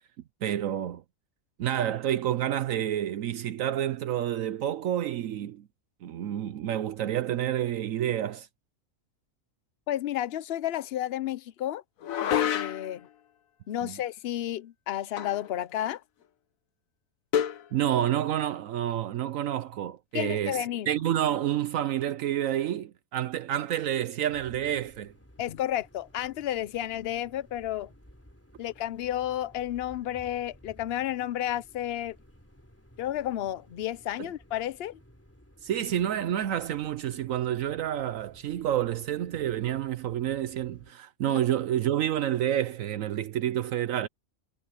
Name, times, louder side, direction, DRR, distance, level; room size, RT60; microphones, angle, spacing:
voice 1, 0.4-1.0 1.6-5.7 6.0-8.5 13.8-14.0 17.7-25.1 34.2-34.3 35.6-44.1, right 11 dB, 75° right, 1.0 m, -29 dB
voice 2, 9.9-11.8 12.2-13.0 13.7-16.0 20.1-20.9 25.4-27.9 28.6-32.2 33.0-35.0 41.3-41.4, left 12 dB, 55° left, 0.8 m, -32 dB
sound 1, 12.0-13.0 15.2-15.5 15.8-15.9 17.3-17.7, left 9 dB, 80° left, 1.3 m, -28 dB
sound 2, 24.3-40.9, equal, 10° left, 4.0 m, -56 dB
omnidirectional pair, 1.4 m